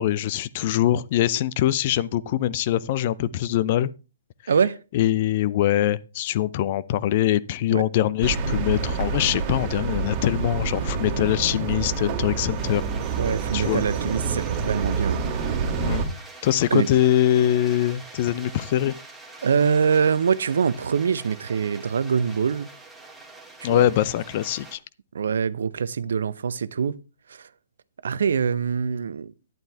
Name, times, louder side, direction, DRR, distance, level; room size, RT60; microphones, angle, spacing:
voice 1, 0.0-3.9 4.9-12.8 13.5-13.8 15.8-16.0 16.4-19.0 23.6-24.8, left 12 dB, 40° left, 0.6 m, -23 dB
voice 2, 4.5-4.8 7.7-7.8 13.2-15.2 16.7-16.9 19.4-22.7 23.6-23.9 25.1-27.0 27.3-27.5 28.0-29.3, right 6 dB, 60° right, 0.7 m, -24 dB
sound 1, 8.2-16.1, right 5 dB, 30° right, 2.3 m, -27 dB
sound 2, 12.6-24.8, right 3 dB, ahead, 2.2 m, -45 dB
11.5 x 10.5 x 3.4 m
figure-of-eight pair, 125°, 0 cm